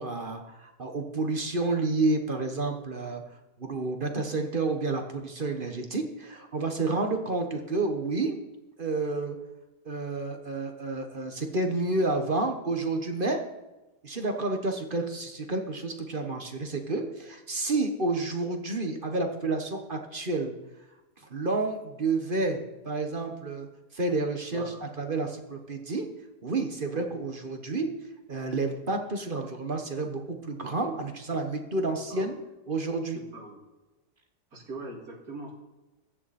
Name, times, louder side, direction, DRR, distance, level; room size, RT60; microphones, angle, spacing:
voice 1, 0.0-3.2 3.6-8.4 8.8-9.4 9.8-13.4 14.0-20.6 21.3-23.7 23.9-26.1 26.4-27.9 28.3-32.4 32.7-33.2, right 3 dB, 35° right, 5 dB, 1.3 m, -30 dB
voice 2, 24.5-24.9 26.9-27.2 32.1-32.3 33.1-33.6 34.5-35.5, right 2 dB, 60° right, -1 dB, 3.1 m, -42 dB
15.0 x 11.5 x 4.3 m, 1.1 s
omnidirectional pair, 1.8 m